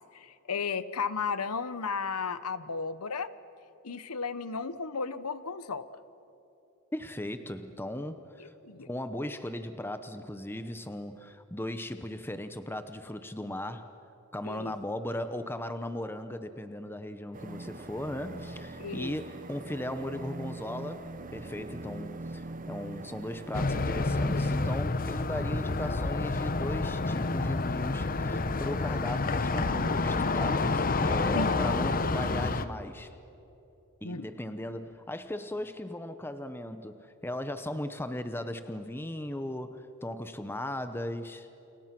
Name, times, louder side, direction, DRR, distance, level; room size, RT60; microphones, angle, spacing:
voice 1, 0.1-3.3 3.8-5.9 8.4-8.9 14.4-14.7 18.8-19.1 31.3-31.6 34.0-34.2, left 5 dB, 85° left, 14 dB, 1.0 m, -34 dB
voice 2, 6.9-8.5 8.9-13.9 14.3-33.1 34.0-41.5, left 1 dB, 10° left, 9 dB, 0.9 m, -37 dB
sound 1, 17.3-24.8, right 2 dB, 40° right, 1.1 m, -43 dB
sound 2, 23.5-32.7, left 3 dB, 40° left, 0.9 m, -29 dB
29.5 x 29.5 x 6.0 m, 2.8 s
head